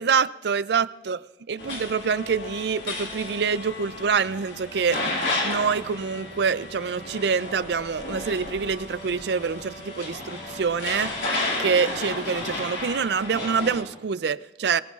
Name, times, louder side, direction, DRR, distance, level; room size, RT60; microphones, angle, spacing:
voice 1, 0.0-5.0 5.4-11.1 11.6-14.8, right 6 dB, 65° right, 0.4 m, -26 dB
sound 1, 1.6-13.8, left 2 dB, 80° left, 5.0 m, -32 dB
23.0 x 20.5 x 2.4 m
head